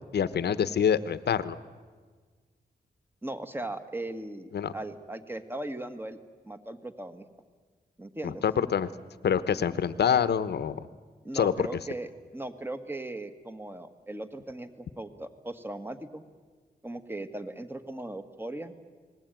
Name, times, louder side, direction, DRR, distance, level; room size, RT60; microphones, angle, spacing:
voice 1, 0.1-1.6 4.5-4.7 8.2-8.9 9.2-10.8 11.3-11.7, left 8 dB, 80° left, 14 dB, 1.1 m, -26 dB
voice 2, 3.2-6.2 6.5-7.3 8.0-8.4 11.2-16.2 16.8-18.7, right 1 dB, 15° right, 9 dB, 1.8 m, -38 dB
30.0 x 20.5 x 9.2 m, 1.5 s
wide cardioid pair, 105°, 17 cm